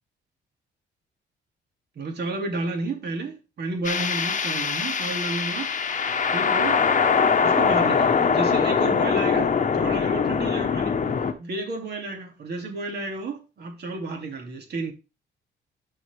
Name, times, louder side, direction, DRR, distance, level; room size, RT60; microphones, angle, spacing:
voice 1, 2.0-6.8 7.4-11.0 11.4-14.9, right 2 dB, 55° right, 2.5 m, -32 dB
sound 1, 3.8-11.3, left 6 dB, 40° left, 1.1 m, -22 dB
12.0 x 4.3 x 3.4 m
cardioid pair, 90°, 20 cm